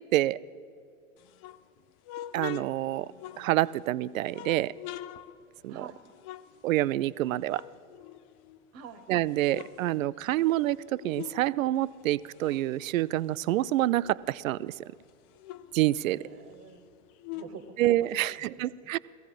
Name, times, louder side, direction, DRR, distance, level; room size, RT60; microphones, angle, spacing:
sound 1, 1.2-3.8 4.3-7.2 7.4-8.8 9.2-11.5 11.7-14.3 14.7-14.8 15.0-18.4, left 12 dB, 40° left, 0.6 m, -45 dB
voice 1, 2.3-3.1 3.4-4.7 5.6-5.8 6.6-7.6 9.1-14.7 15.7-16.2 17.8-19.0, right 15 dB, 75° right, 20 dB, 0.5 m, -27 dB
voice 2, 5.7-6.0 8.7-9.0 16.0-16.9 17.3-18.5 18.8-18.9, right 6 dB, 40° right, 11 dB, 1.3 m, -47 dB
16.5 x 15.5 x 5.0 m, 2.3 s
hypercardioid pair, 105°, 41 cm